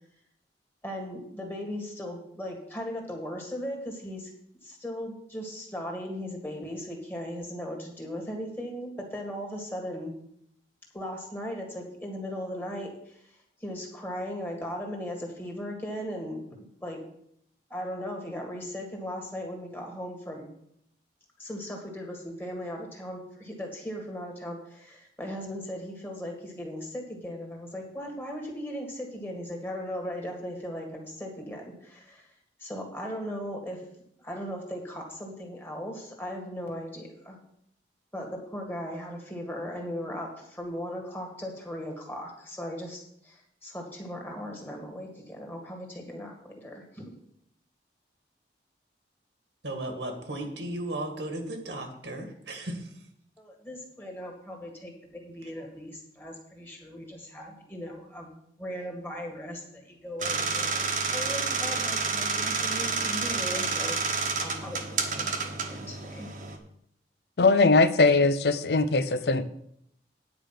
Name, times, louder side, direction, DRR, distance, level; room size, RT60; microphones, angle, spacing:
voice 1, 0.8-4.3 4.6-10.1 10.9-13.3 13.6-17.0 17.7-20.5 21.4-32.3 32.6-33.8 34.2-37.4 38.1-47.1 53.4-64.0 64.4-66.3, equal, 10° left, 1 dB, 2.0 m, -38 dB
voice 2, 49.6-52.8, right 1 dB, 80° right, 5 dB, 1.8 m, -35 dB
sound 1, 60.2-66.6, right 4 dB, 45° right, 1.2 m, -29 dB
voice 3, 67.4-69.5, left 3 dB, 65° left, 12 dB, 0.6 m, -21 dB
9.7 x 5.0 x 7.5 m, 0.72 s
head